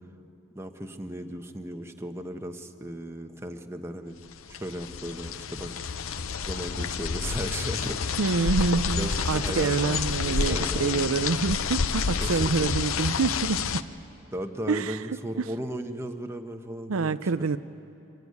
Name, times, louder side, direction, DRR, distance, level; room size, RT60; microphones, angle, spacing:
voice 1, 0.5-4.2 4.5-5.7 6.4-8.1 8.9-11.1 12.2-12.8 14.3-17.5, equal, 10° right, 5 dB, 1.1 m, -36 dB
sound 1, 4.3-13.8, left 5 dB, 75° left, 0.7 m, -29 dB
voice 2, 8.2-13.8 14.7-15.0 15.4-15.5 16.9-17.6, right 4 dB, 85° right, 12 dB, 0.6 m, -27 dB
25.5 x 20.0 x 9.6 m, 2.8 s
head